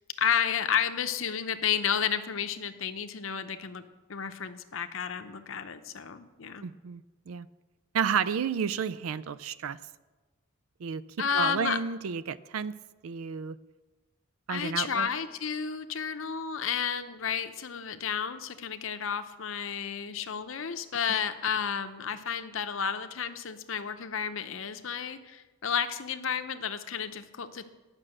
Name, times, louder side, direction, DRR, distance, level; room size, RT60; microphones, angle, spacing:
voice 1, 0.2-3.8 4.1-6.6 11.2-11.8 14.5-27.7, left 7 dB, 70° left, 9 dB, 0.7 m, -31 dB
voice 2, 6.6-7.5 7.9-9.8 10.8-11.0 11.3-12.7 13.0-13.6 14.5-15.1, right 6 dB, 85° right, 17 dB, 0.4 m, -31 dB
11.0 x 6.2 x 7.7 m, 1.2 s
head